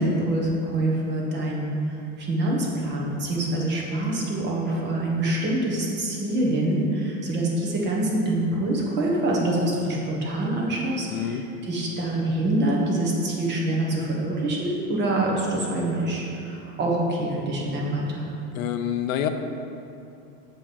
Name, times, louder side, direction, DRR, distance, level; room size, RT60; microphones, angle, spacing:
voice 1, 0.0-18.3, right 1 dB, 25° right, -2 dB, 1.3 m, -25 dB
voice 2, 11.1-11.4 18.5-19.3, left 10 dB, 75° left, 7 dB, 0.7 m, -27 dB
7.8 x 5.1 x 5.4 m, 2.7 s
supercardioid pair, 160°, 41 cm